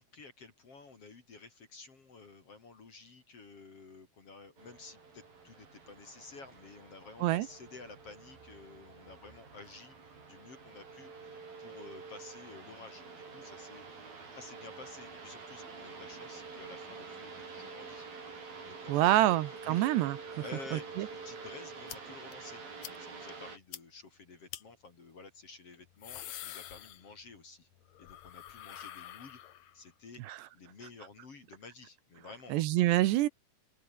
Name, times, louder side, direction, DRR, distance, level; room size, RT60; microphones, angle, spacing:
voice 1, 0.0-18.1 18.6-19.4 19.6-19.9 20.4-27.7 28.0-29.4 29.7-32.6, left 4 dB, 35° left, 3.4 m, -52 dB
sound 1, 4.6-23.6, right 4 dB, 50° right, 8.1 m, -48 dB
voice 2, 18.9-20.2 20.7-21.1 30.3-30.4 32.5-33.3, right 15 dB, 75° right, 3.0 m, -26 dB
sound 2, 21.9-22.0 22.3-22.4 22.8-23.0 23.3-23.4 23.7-23.8 24.5-24.6 25.7-27.4 27.7-29.9, left 12 dB, 80° left, 1.6 m, -46 dB
open air
omnidirectional pair, 5.2 m